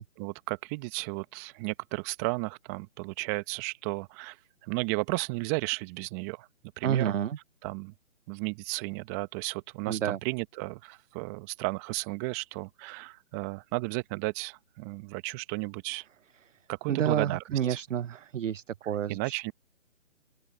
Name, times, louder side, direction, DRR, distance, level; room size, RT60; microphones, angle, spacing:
voice 1, 0.0-4.4 4.6-6.5 6.8-7.1 7.6-7.9 8.3-16.0 16.7-17.4 17.7-17.8 19.1-19.5, right 26 dB, 15° right, 1.0 m, -34 dB
voice 2, 6.8-7.4 9.9-10.2 16.9-19.5, right 9 dB, 70° right, 0.5 m, -29 dB
open air
figure-of-eight pair, 150°, 39 cm